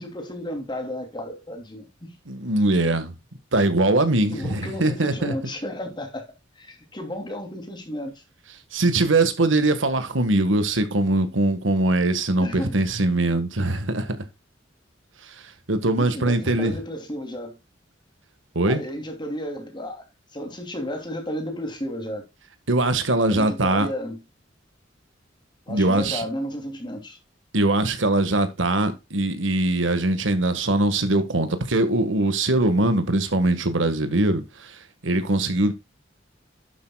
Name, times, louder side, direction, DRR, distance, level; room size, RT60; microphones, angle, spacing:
voice 1, 0.0-2.1 4.3-6.3 6.6-8.2 12.4-12.8 16.0-17.6 18.6-20.0 20.3-22.3 23.2-24.2 25.7-27.2, equal, 25° left, 3.1 m, -33 dB
voice 2, 2.3-3.1 3.5-5.3 8.7-14.2 15.2-16.7 18.5-18.8 22.7-23.9 25.7-26.2 27.5-35.7, right 2 dB, 85° right, 1.7 m, -22 dB
11.0 x 7.7 x 2.4 m
head